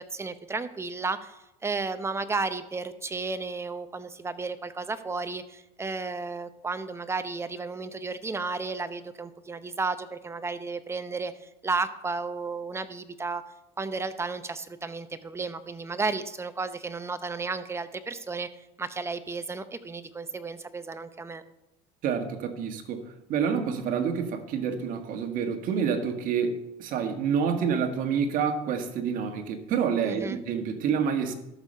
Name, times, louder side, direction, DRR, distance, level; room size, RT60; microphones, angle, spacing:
voice 1, 0.0-13.4 13.8-18.5 18.8-21.4 30.0-30.4, right 4 dB, 15° right, 11 dB, 0.8 m, -33 dB
voice 2, 22.0-23.0 23.3-31.3, right 7 dB, 60° right, 6 dB, 1.6 m, -28 dB
13.0 x 6.5 x 5.5 m, 0.89 s
cardioid pair, 120°, 16 cm